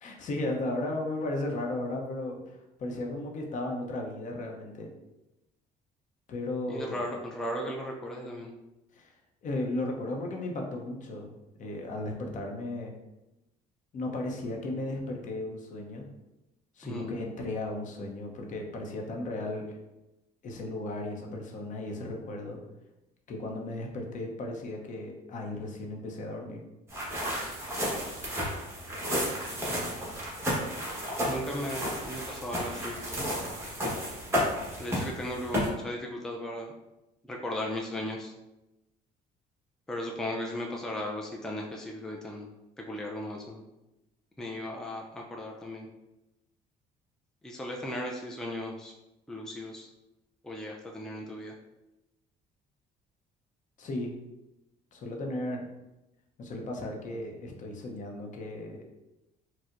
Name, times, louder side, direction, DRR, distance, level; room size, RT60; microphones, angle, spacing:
voice 1, 0.0-4.9 6.3-7.0 8.9-9.1 9.4-12.9 13.9-16.1 16.8-19.8 20.4-22.6 23.3-26.6 53.8-54.2 54.9-55.7 56.4-58.9, left 2 dB, 50° left, 1 dB, 0.7 m, -35 dB
voice 2, 6.7-8.5 16.8-17.2 29.6-30.0 31.2-33.0 34.8-36.7 37.2-38.3 39.9-42.5 42.8-43.6 44.4-45.9 47.4-48.9 49.3-49.9 50.4-51.5, left 1 dB, 5° left, -1 dB, 0.3 m, -36 dB
sound 1, 26.9-35.7, equal, 15° right, 1.1 m, -32 dB
4.3 x 2.0 x 2.5 m, 0.96 s
cardioid pair, 110°, 17 cm